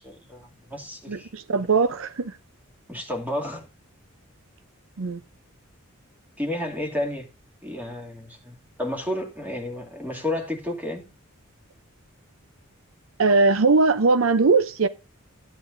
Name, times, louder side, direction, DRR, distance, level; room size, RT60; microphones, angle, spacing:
voice 1, 0.0-1.3 2.9-3.7 6.4-7.3 7.6-11.0, left 1 dB, 10° right, 2.5 m, -31 dB
voice 2, 1.1-2.4 5.0-5.2 13.2-14.9, right 4 dB, 65° right, 0.6 m, -20 dB
13.0 x 9.9 x 2.6 m
head